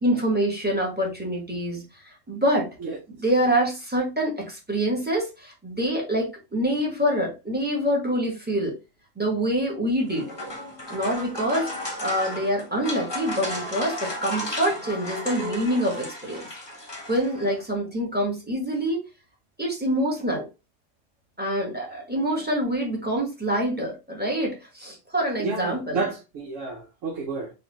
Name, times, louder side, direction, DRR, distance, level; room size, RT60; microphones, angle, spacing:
voice 1, 0.0-2.7 3.1-8.7 9.2-10.3 10.9-11.7 12.0-16.5 17.1-19.0 19.6-20.5 21.4-26.0, equal, 10° right, 1.1 m, -26 dB
sound 1, 10.0-17.6, left 1 dB, 25° left, 0.9 m, -34 dB
voice 2, 25.4-27.5, right 4 dB, 85° right, 1.1 m, -30 dB
4.0 x 2.7 x 2.9 m
omnidirectional pair, 1.3 m